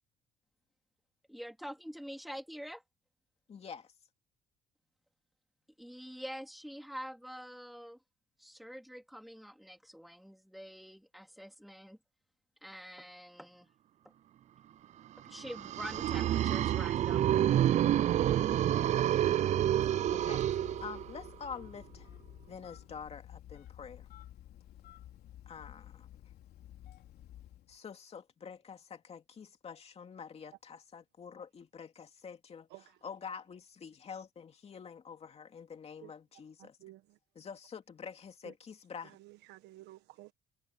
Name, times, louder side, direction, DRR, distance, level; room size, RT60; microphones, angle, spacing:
voice 1, 1.3-2.8 5.8-8.0 8.4-12.0 12.6-13.7 15.2-17.6, equal, ahead, 2.5 m, -46 dB
voice 2, 3.5-3.9 20.1-20.5 20.8-22.1 22.5-24.1 25.5-26.1 27.7-32.7 33.0-36.8 37.4-39.1, left 6 dB, 35° left, 2.6 m, -47 dB
sound 1, 15.4-21.3, right 11 dB, 45° right, 0.4 m, -28 dB
Telephone, 18.1-27.8, left 12 dB, 70° left, 4.0 m, -52 dB
voice 3, 32.7-33.0 36.0-36.1 36.6-37.2 38.4-38.5 39.0-40.3, right 17 dB, 85° right, 1.3 m, -53 dB
cardioid pair, 110°, 17 cm